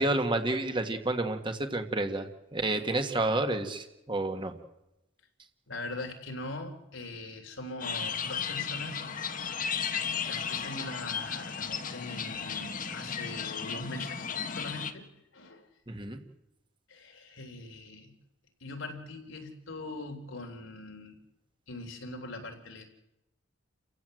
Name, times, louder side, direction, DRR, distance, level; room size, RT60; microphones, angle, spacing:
voice 1, 0.0-4.5 15.9-16.2, right 2 dB, 25° right, 6 dB, 1.6 m, -30 dB
voice 2, 5.7-9.0 9.8-9.9 10.3-15.1 15.3-15.7 16.9-18.1 18.6-21.2 21.7-22.8, left 2 dB, 80° left, 3 dB, 3.5 m, -41 dB
sound 1, 7.8-14.9, left 6 dB, 45° left, 1.4 m, -34 dB
29.5 x 15.5 x 7.8 m, 0.93 s
head